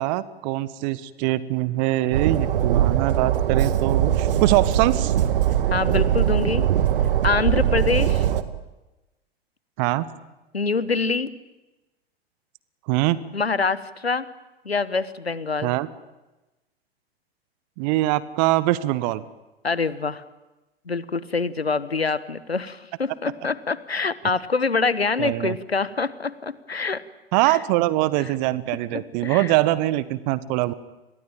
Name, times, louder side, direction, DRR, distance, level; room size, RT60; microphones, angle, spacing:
voice 1, 0.0-5.1 9.8-10.0 12.9-13.2 15.6-15.9 17.8-19.2 25.2-25.6 27.3-30.7, right 17 dB, 45° right, 17 dB, 1.6 m, -23 dB
Train, 2.1-8.4, right 10 dB, 65° right, 2.0 m, -21 dB
voice 2, 5.7-6.6 7.2-8.3 10.5-11.3 13.3-14.3 14.6-15.7 19.6-20.2 20.9-27.0 27.4-27.6 28.9-29.5, left 4 dB, 85° left, 16 dB, 1.4 m, -25 dB
29.5 x 22.0 x 9.1 m, 1.1 s
figure-of-eight pair, 90°, 30 cm